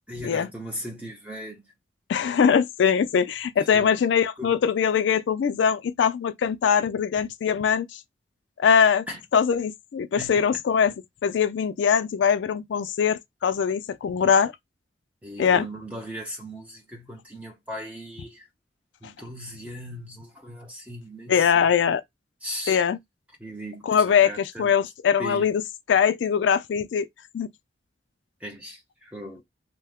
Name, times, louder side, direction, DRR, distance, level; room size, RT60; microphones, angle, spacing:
voice 1, 0.1-1.6 3.7-3.9 4.4-4.5 9.1-9.2 10.2-10.4 15.2-18.4 19.0-21.7 22.4-22.8 23.4-24.7 25.2-25.5 28.4-29.4, equal, 5° right, 0.8 m, -38 dB
voice 2, 2.1-8.0 8.6-9.1 9.3-10.9 11.2-14.5 15.4-15.7 21.3-22.0 22.7-23.0 23.9-25.6 25.9-27.1 27.3-27.5, left 7 dB, 75° left, 0.3 m, -22 dB
2.8 x 2.2 x 3.4 m
head